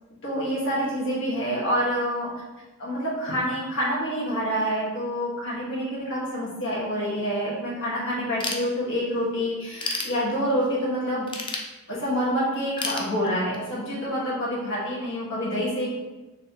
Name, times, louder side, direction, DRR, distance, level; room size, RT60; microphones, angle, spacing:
voice 1, 0.2-2.3 2.8-11.3 11.9-15.9, equal, 60° left, -6 dB, 1.5 m, -27 dB
Ratchet pawl / Tools, 8.4-9.2 9.6-10.7 11.3-12.2 12.8-13.8, left 3 dB, 20° left, 0.4 m, -32 dB
4.1 x 3.1 x 3.0 m, 1.1 s
head